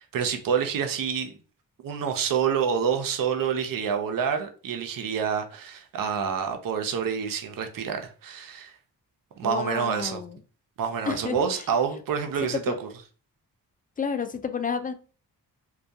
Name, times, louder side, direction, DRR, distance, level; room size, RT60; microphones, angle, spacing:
voice 1, 0.0-1.3 1.8-8.8 9.4-10.2 10.8-12.9, right 7 dB, 55° right, 0.6 m, -27 dB
voice 2, 9.4-10.4 11.0-11.7 12.5-12.8 14.0-14.9, left 6 dB, 20° left, 0.3 m, -30 dB
2.2 x 2.2 x 2.7 m
cardioid pair, 50°, 42 cm